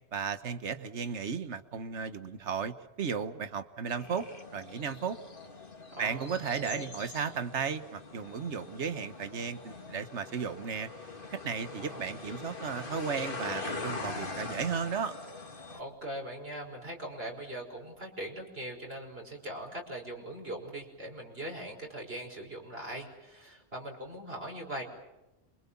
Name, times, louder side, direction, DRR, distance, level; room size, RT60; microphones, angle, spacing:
voice 1, 0.1-4.3 4.5-5.2 6.0-10.9 11.3-15.1, right 6 dB, 80° right, 11 dB, 1.5 m, -35 dB
sound 1, 4.0-15.8, left 3 dB, 50° left, 2.3 m, -42 dB
voice 2, 5.9-6.9 11.7-12.3 15.7-24.8, right 1 dB, 60° right, 1 dB, 5.7 m, -41 dB
28.0 x 25.0 x 7.2 m, 0.98 s
omnidirectional pair, 1.2 m